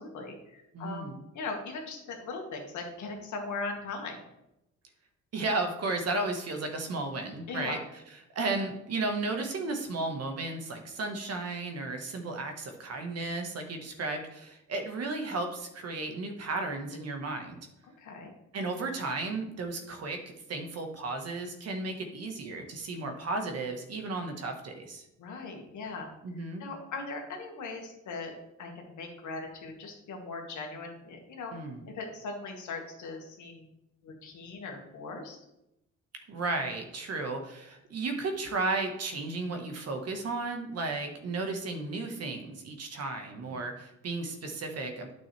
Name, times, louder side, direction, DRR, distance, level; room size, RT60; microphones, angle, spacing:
voice 1, 0.0-4.2 7.5-7.8 18.0-18.3 25.2-26.1 26.6-28.3 28.6-31.5 31.9-33.7 34.0-35.4 43.4-43.6, left 3 dB, 75° left, 2 dB, 1.9 m, -39 dB
voice 2, 0.7-1.2 5.3-7.8 8.3-17.6 18.5-20.2 20.5-25.0 26.2-26.6 31.5-31.8 36.3-45.1, right 3 dB, 55° right, 5 dB, 1.4 m, -34 dB
8.9 x 6.2 x 3.3 m, 0.88 s
cardioid pair, 90°, 30 cm